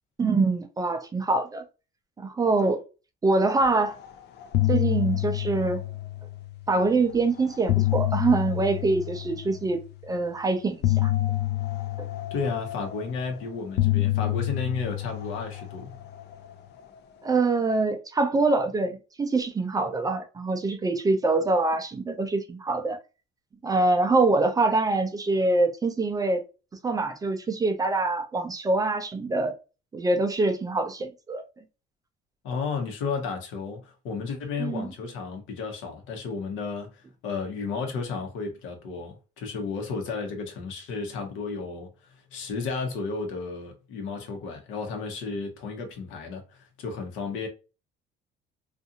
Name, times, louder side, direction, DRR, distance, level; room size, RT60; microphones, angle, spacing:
voice 1, 0.2-1.6 2.2-2.8 3.2-3.9 4.7-5.8 6.7-9.8 10.1-11.1 12.0-12.1 17.2-23.0 23.6-26.4 26.8-29.5 29.9-31.4 34.6-34.9, right 3 dB, 20° right, 0.4 m, -24 dB
sound 1, 3.9-4.1 4.4-6.7 7.4-9.8 10.8-13.3 13.8-16.3, left 16 dB, 60° left, 0.4 m, -27 dB
voice 2, 12.3-16.0 32.4-41.9 42.3-47.5, left 4 dB, 80° left, 0.9 m, -33 dB
2.5 x 2.4 x 2.7 m
cardioid pair, 130°, 20 cm